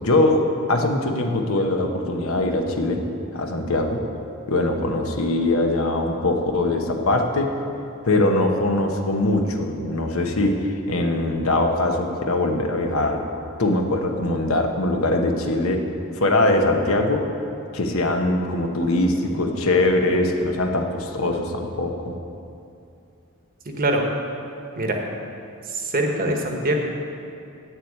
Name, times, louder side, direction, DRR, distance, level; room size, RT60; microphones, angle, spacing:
voice 1, 0.0-3.0 3.3-4.0 4.5-7.5 8.0-13.2 13.6-15.8 16.1-17.2 17.7-22.2, left 2 dB, 70° left, 3 dB, 1.1 m, -22 dB
voice 2, 23.6-24.1 24.7-25.0 25.6-26.7, right 1 dB, 40° right, 2 dB, 1.2 m, -23 dB
8.0 x 7.5 x 8.6 m, 2.6 s
head